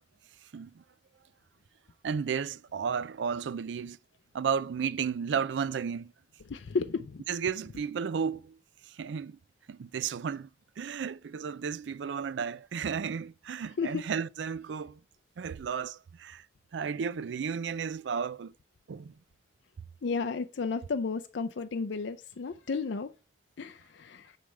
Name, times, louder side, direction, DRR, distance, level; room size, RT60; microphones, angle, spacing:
voice 1, 0.5-0.8 2.0-4.0 4.3-6.1 7.3-8.6 8.9-9.4 9.7-10.5 10.8-15.0 15.4-16.4 16.7-18.5 18.9-19.1, right 6 dB, 90° right, 0.4 m, -33 dB
voice 2, 6.5-7.2 13.8-14.0 20.0-23.1 23.6-24.4, left 4 dB, 90° left, 0.5 m, -33 dB
9.4 x 3.3 x 6.3 m
head